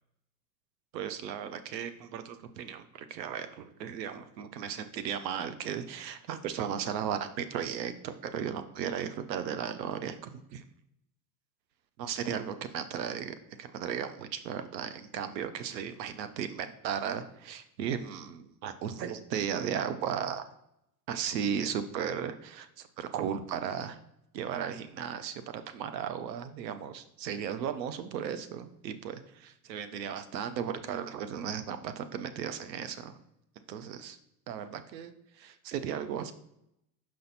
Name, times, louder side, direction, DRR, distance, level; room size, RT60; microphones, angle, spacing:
voice 1, 0.9-10.6 12.0-20.4 21.1-24.0 24.3-33.2 33.7-34.2 34.5-36.3, right 8 dB, 80° right, 10 dB, 0.7 m, -36 dB
6.2 x 4.4 x 4.0 m, 0.79 s
hypercardioid pair, 90°, 50 cm